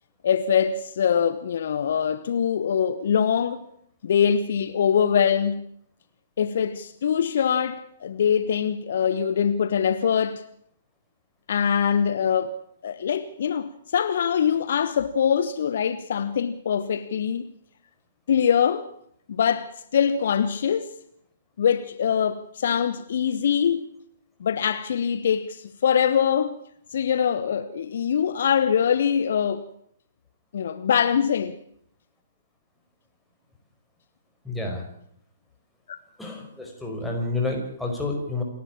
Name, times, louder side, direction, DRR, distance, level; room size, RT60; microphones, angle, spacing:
voice 1, 0.2-3.7 4.0-5.7 6.4-10.4 11.5-12.6 12.8-17.5 18.3-18.9 19.3-20.9 21.6-23.9 24.4-26.6 26.9-29.7 30.5-31.6, left 8 dB, 50° left, 1.1 m, -23 dB
voice 2, 34.4-34.9 36.2-38.4, left 2 dB, 5° left, 5.3 m, -29 dB
28.0 x 12.0 x 8.6 m
figure-of-eight pair, 125°, 0 cm